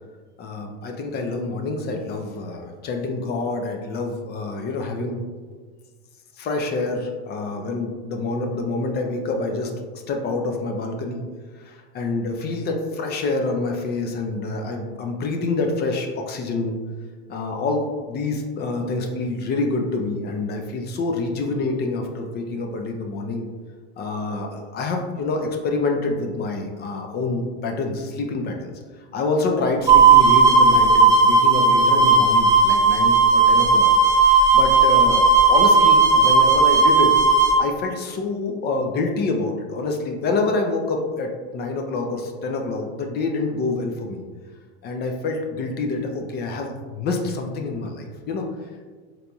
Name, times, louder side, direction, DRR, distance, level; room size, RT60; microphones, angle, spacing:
voice 1, 0.4-5.2 6.4-11.2 11.6-16.8 17.3-23.5 24.0-33.9 34.2-37.1 37.6-44.2 44.8-48.4, left 3 dB, 35° left, 3 dB, 0.4 m, -27 dB
sound 1, 29.9-37.6, right 4 dB, 10° right, 0.6 m, -15 dB
3.9 x 2.8 x 2.3 m, 1.5 s
supercardioid pair, 120°, 31 cm